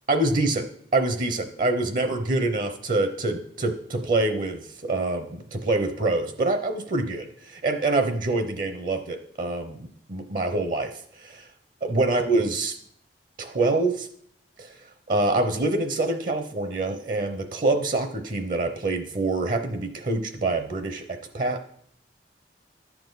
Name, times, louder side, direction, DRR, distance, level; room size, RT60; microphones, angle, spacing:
voice 1, 0.1-0.6 0.9-10.9 11.2-11.4 11.8-12.7 13.4-14.1 14.6-14.7 15.1-21.6, right 2 dB, 50° right, 7 dB, 0.8 m, -25 dB
11.0 x 7.2 x 4.0 m, 0.65 s
head